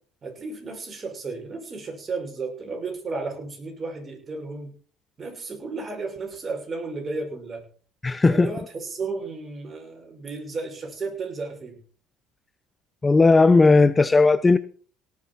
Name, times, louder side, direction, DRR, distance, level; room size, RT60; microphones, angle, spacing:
voice 1, 0.2-4.7 5.2-7.7 8.3-11.8, right 3 dB, 35° right, 6.4 m, -33 dB
voice 2, 8.0-8.5 13.0-14.6, left 3 dB, 20° left, 0.7 m, -16 dB
18.0 x 7.4 x 5.9 m
supercardioid pair, 80°, 0 cm